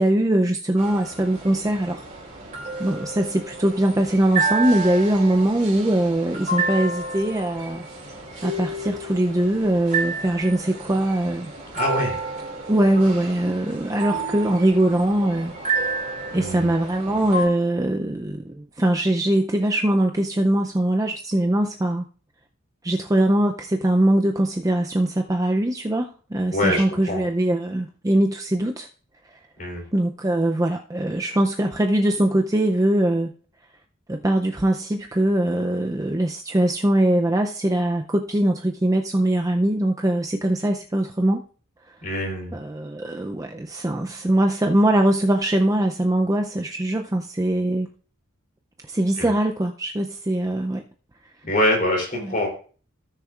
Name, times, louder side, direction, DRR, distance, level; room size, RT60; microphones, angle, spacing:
voice 1, 0.0-2.0 2.8-7.9 8.4-11.5 12.7-15.5 16.3-22.0 22.8-28.9 29.9-33.3 34.1-41.4 42.5-47.9 48.9-50.8 52.1-52.3, right 1 dB, 15° right, 3 dB, 0.5 m, -22 dB
sound 1, 0.8-17.5, right 3 dB, 40° right, 3.0 m, -30 dB
voice 2, 11.7-12.2 16.3-16.7 26.5-27.2 29.6-29.9 42.0-42.6 49.2-49.3 51.4-52.5, left 1 dB, 45° left, 0 dB, 3.3 m, -24 dB
16.5 x 6.6 x 2.4 m, 0.40 s
head